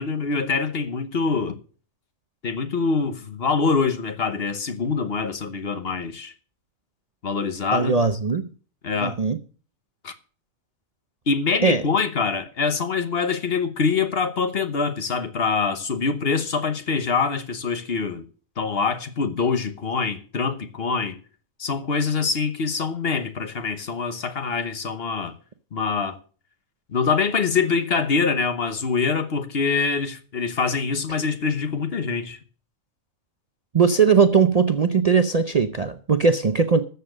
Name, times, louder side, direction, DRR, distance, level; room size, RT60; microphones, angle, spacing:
voice 1, 0.0-1.6 2.4-6.3 7.2-8.0 8.8-9.2 10.0-10.1 11.3-18.2 18.6-21.2 21.6-25.3 25.7-26.2 26.9-32.4, left 5 dB, 50° left, 1.2 m, -24 dB
voice 2, 7.7-8.5 9.0-9.4 11.6-11.8 33.7-36.9, right 5 dB, 40° right, 0.6 m, -19 dB
13.5 x 7.0 x 6.5 m
omnidirectional pair, 1.4 m